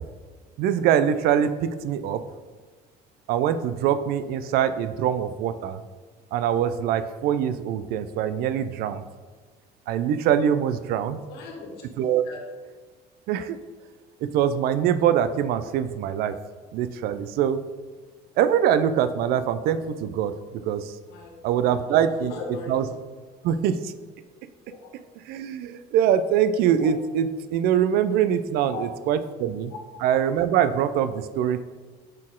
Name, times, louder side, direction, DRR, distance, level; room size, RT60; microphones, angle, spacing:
voice 1, 0.6-2.2 3.3-5.8 6.3-9.0 9.9-11.2 12.0-12.2 13.3-13.6 14.2-16.3 16.7-17.6 18.4-21.0 21.4-22.3 22.7-22.9 23.4-23.9 25.3-29.7 30.0-31.6, right 9 dB, 65° right, 11 dB, 0.4 m, -23 dB
voice 2, 11.3-11.7 12.3-12.4 21.1-21.7 22.3-22.7 24.8-24.9 26.8-26.9 28.7-28.8, left 4 dB, 75° left, 0 dB, 1.6 m, -37 dB
6.3 x 4.2 x 3.7 m, 1.4 s
cardioid pair, 130°, 17 cm